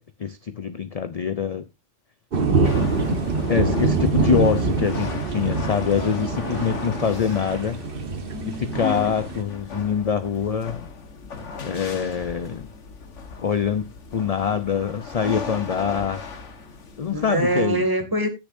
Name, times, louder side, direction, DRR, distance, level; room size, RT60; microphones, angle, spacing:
voice 1, 0.0-1.6 3.5-7.8 8.5-10.8 11.6-12.7 13.4-16.2 17.0-17.8, left 7 dB, 40° left, 0.6 m, -24 dB
voice 2, 2.3-2.9 17.1-18.3, right 1 dB, 20° right, 2.3 m, -25 dB
sound 1, 2.3-9.4, right 4 dB, 50° right, 1.3 m, -24 dB
sound 2, 2.6-17.7, left 5 dB, 80° left, 1.7 m, -36 dB
18.0 x 6.8 x 2.6 m
omnidirectional pair, 1.2 m